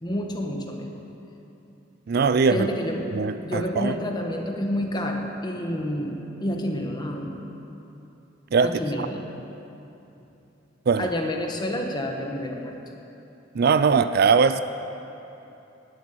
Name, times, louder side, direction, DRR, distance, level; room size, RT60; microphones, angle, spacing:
voice 1, 0.0-1.0 2.5-3.0 3.4-7.4 8.6-9.2 11.0-12.7, left 1 dB, 20° left, 2 dB, 1.2 m, -29 dB
voice 2, 2.1-2.7 3.2-3.9 8.5-9.1 10.9-11.1 13.6-14.6, right 5 dB, 55° right, 12 dB, 0.4 m, -21 dB
12.0 x 7.7 x 9.0 m, 2.9 s
head